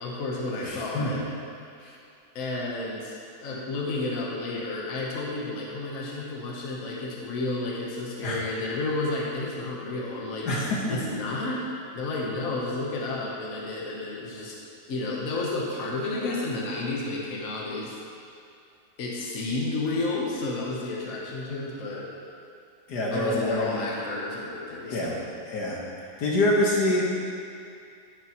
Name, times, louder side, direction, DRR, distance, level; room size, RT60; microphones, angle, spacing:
voice 1, 0.0-1.2 2.3-3.2 3.4-10.5 10.9-14.6 14.9-17.9 19.0-22.1 23.1-25.2, left 2 dB, 55° left, -4 dB, 1.5 m, -31 dB
voice 2, 0.6-1.1 8.2-8.4 10.5-11.0 22.9-24.0 24.9-25.1 25.5-25.8 26.2-27.1, left 1 dB, 75° left, -4 dB, 2.0 m, -26 dB
10.5 x 9.8 x 3.1 m, 2.4 s
omnidirectional pair, 1.8 m